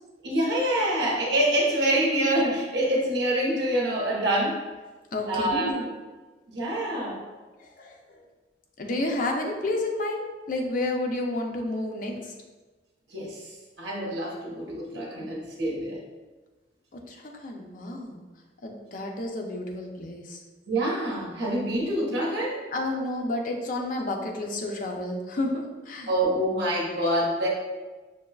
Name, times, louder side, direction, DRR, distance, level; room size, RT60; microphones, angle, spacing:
voice 1, 0.2-4.6 5.3-5.8 6.5-7.2 13.1-13.5 13.8-16.0 20.7-22.6 26.1-27.5, right 1 dB, 75° right, -3 dB, 1.0 m, -26 dB
voice 2, 5.1-5.8 7.6-8.2 8.8-12.3 17.1-18.2 18.6-20.4 22.7-26.1, left 2 dB, 50° left, 1 dB, 0.5 m, -31 dB
6.0 x 2.2 x 2.3 m, 1.3 s
head